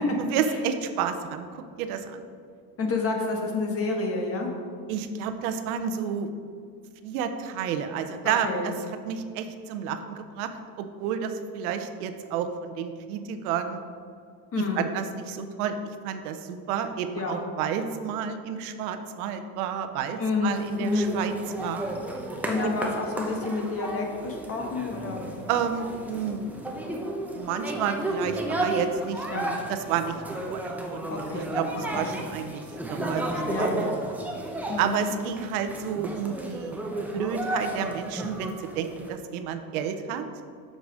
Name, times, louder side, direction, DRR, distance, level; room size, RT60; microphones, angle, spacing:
voice 1, 0.2-2.2 4.9-6.3 7.0-8.7 9.0-10.5 10.8-13.8 14.6-15.8 16.0-21.3 21.6-21.9 22.6-22.8 25.5-26.5 27.3-33.9 34.8-36.8 37.1-40.3, right 8 dB, 80° right, 8 dB, 0.7 m, -31 dB
voice 2, 2.8-4.5 8.2-8.7 14.5-14.9 17.1-17.5 20.2-21.1 22.5-25.2 29.3-29.4 31.1-31.5 31.9-32.2 33.5-33.8 34.7-35.1, left 3 dB, 30° left, 2 dB, 1.2 m, -29 dB
sound 1, 20.5-39.1, right 1 dB, 5° right, 0.7 m, -33 dB
6.5 x 4.7 x 5.3 m, 2.2 s
supercardioid pair, 120°, 43 cm